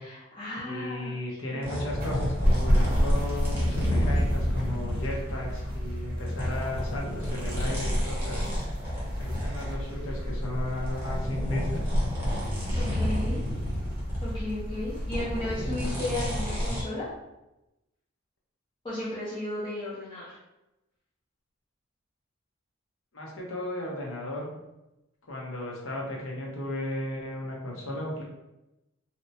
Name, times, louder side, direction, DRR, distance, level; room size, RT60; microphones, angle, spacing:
voice 1, 0.0-1.1 1.4-1.7 12.7-13.4 14.2-17.1 18.8-20.4, left 1 dB, 25° left, -11 dB, 0.6 m, -34 dB
voice 2, 0.6-8.4 9.2-11.9 23.1-24.5 25.3-28.2, left 1 dB, 70° left, -2 dB, 0.7 m, -35 dB
sound 1, 1.6-5.7 6.2-14.6 14.9-16.8, equal, 10° right, 0.7 m, -31 dB
sound 2, 1.9-15.7, equal, 45° right, 0.7 m, -31 dB
2.8 x 2.1 x 2.7 m, 0.95 s
head